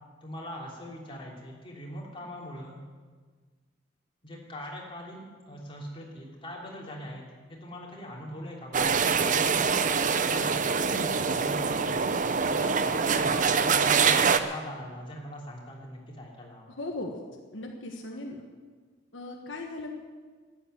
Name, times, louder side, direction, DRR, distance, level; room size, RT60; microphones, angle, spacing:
voice 1, 0.2-2.8 4.2-8.9 9.3-12.2 12.4-16.7, equal, 30° left, -3 dB, 3.2 m, -41 dB
sound 1, 8.7-14.4, right 5 dB, 45° right, 0.7 m, -24 dB
voice 2, 10.9-11.2 16.8-17.2 17.5-18.4 19.1-19.9, left 2 dB, 75° left, 1 dB, 1.4 m, -37 dB
12.5 x 9.2 x 9.3 m, 1.5 s
head